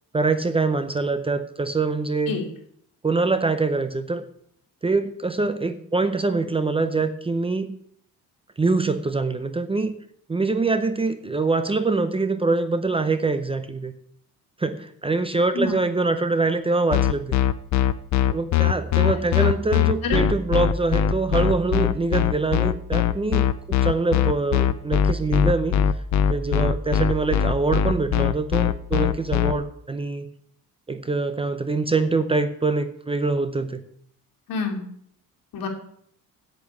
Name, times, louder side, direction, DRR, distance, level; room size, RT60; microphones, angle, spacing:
voice 1, 0.1-2.4 3.0-4.2 4.8-7.8 8.6-9.9 10.3-13.9 14.6-17.4 18.3-25.8 26.3-30.3 30.9-33.8, right 3 dB, 15° right, 10 dB, 0.6 m, -24 dB
sound 1, 16.9-29.5, left 9 dB, 50° left, 0.6 m, -20 dB
voice 2, 19.1-19.5 20.0-20.2 34.5-34.8 35.5-35.7, left 5 dB, 75° left, 1 dB, 2.8 m, -28 dB
8.4 x 8.3 x 7.2 m, 0.67 s
cardioid pair, 155°, 35 cm